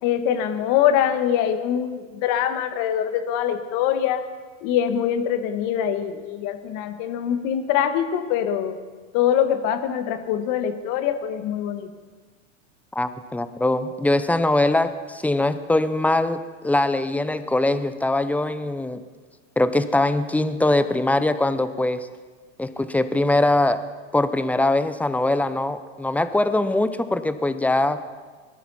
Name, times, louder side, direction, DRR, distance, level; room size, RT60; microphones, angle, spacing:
voice 1, 0.0-4.2 4.6-8.8 9.1-11.9, left 9 dB, 50° left, 9 dB, 1.5 m, -23 dB
voice 2, 12.9-19.0 19.6-22.1 22.6-23.8 24.1-28.0, left 2 dB, 5° left, 12 dB, 0.6 m, -22 dB
21.5 x 12.5 x 4.2 m, 1.4 s
hypercardioid pair, 105°, 38 cm